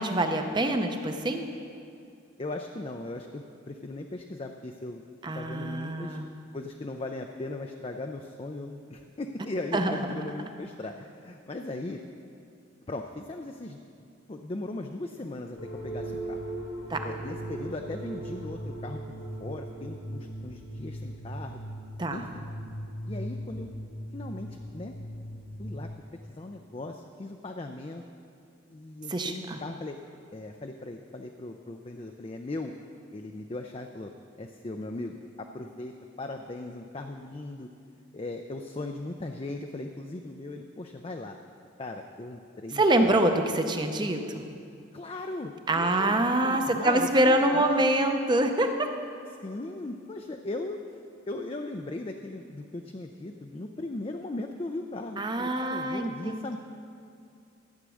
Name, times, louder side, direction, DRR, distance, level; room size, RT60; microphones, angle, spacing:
voice 1, 0.0-1.5 5.2-6.3 9.7-10.0 16.9-17.1 22.0-22.2 29.1-29.6 42.7-44.4 45.7-48.9 55.2-56.6, right 1 dB, 20° right, 5 dB, 0.7 m, -25 dB
voice 2, 2.4-5.0 5.3-6.2 6.5-12.0 12.9-15.6 15.8-16.4 17.0-19.0 19.4-21.6 22.1-22.4 23.1-23.7 24.1-24.9 25.6-25.9 26.3-28.0 28.7-30.0 30.3-32.7 33.1-34.1 34.4-37.7 38.1-41.4 41.8-43.2 44.9-47.9 49.4-50.8 51.3-56.6, left 2 dB, 30° left, 4 dB, 0.4 m, -38 dB
sound 1, 15.6-25.8, right 1 dB, 85° left, 3.7 m, -38 dB
13.0 x 8.2 x 6.3 m, 2.4 s
head